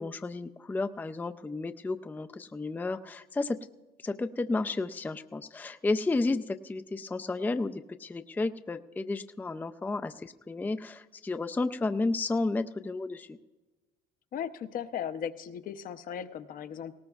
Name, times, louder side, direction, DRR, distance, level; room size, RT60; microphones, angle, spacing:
voice 1, 0.0-3.6 4.0-13.4, left 3 dB, 10° left, 9 dB, 0.4 m, -32 dB
voice 2, 14.3-17.0, left 8 dB, 55° left, 10 dB, 0.7 m, -37 dB
19.0 x 18.0 x 2.4 m, 1.2 s
cardioid pair, 110°, 17 cm